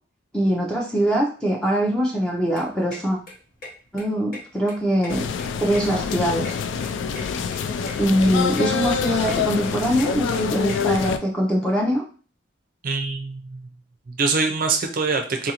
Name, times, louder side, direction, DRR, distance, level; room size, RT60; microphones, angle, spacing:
voice 1, 0.3-3.2 3.9-5.3 5.6-6.6 8.0-12.0, equal, 5° left, -3 dB, 0.5 m, -22 dB
sound 1, 2.3-11.1, left 2 dB, 50° left, 1.0 m, -41 dB
sound 2, 5.1-11.2, left 6 dB, 85° left, 0.3 m, -26 dB
voice 2, 12.8-13.7 14.1-15.5, right 4 dB, 50° right, 3 dB, 0.4 m, -24 dB
3.9 x 2.5 x 2.8 m, 0.39 s
head